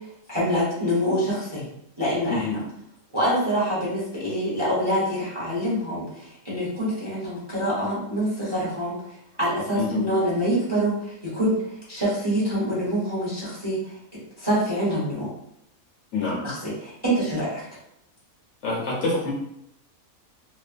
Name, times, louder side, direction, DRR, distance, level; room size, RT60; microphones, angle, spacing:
voice 1, 0.3-1.7 2.0-2.6 3.1-8.9 9.4-10.9 11.3-11.5 11.9-13.9 14.4-15.3 16.4-17.6, equal, 20° right, -8 dB, 0.8 m, -25 dB
voice 2, 18.6-19.3, left 3 dB, 65° left, -4 dB, 1.1 m, -26 dB
3.0 x 2.0 x 2.4 m, 0.75 s
omnidirectional pair, 1.5 m